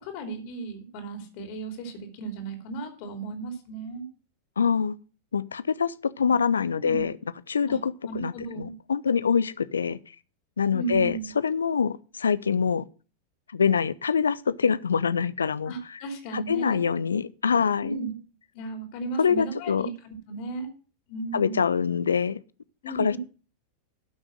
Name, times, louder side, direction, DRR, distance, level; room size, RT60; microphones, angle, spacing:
voice 1, 0.0-4.0 6.7-7.1 7.7-7.8 8.0-8.7 10.7-11.3 15.7-16.8 17.8-18.2 18.5-20.7 21.1-21.6 22.8-23.2, right 3 dB, 45° left, 2.8 m, -35 dB
voice 2, 4.6-4.9 5.3-7.1 7.5-10.0 10.6-12.8 13.5-15.7 16.3-18.0 19.2-19.9 21.3-22.4 23.0-23.2, left 6 dB, 70° left, 0.5 m, -25 dB
13.0 x 6.2 x 6.2 m
figure-of-eight pair, 90°, 0 cm